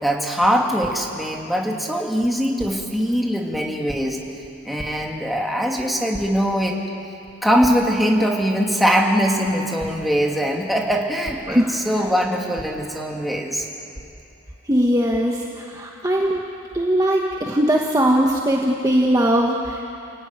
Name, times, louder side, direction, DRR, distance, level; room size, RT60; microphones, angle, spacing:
voice 1, 0.0-4.2 4.6-6.8 7.4-13.7, equal, ahead, -1 dB, 2.5 m, -21 dB
voice 2, 14.7-16.4 16.7-19.8, equal, 15° right, -1 dB, 1.4 m, -20 dB
29.5 x 16.5 x 9.6 m, 2.8 s
head